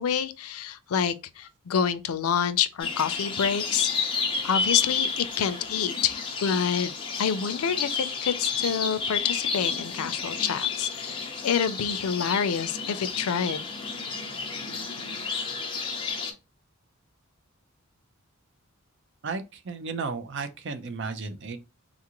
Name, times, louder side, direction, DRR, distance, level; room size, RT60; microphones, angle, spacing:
voice 1, 0.0-6.9 7.2-13.6, left 7 dB, 90° left, 0.4 m, -28 dB
sound 1, 2.8-16.3, left 5 dB, 25° left, 0.7 m, -31 dB
voice 2, 19.2-21.6, right 4 dB, 55° right, 0.5 m, -34 dB
3.7 x 2.4 x 2.9 m
head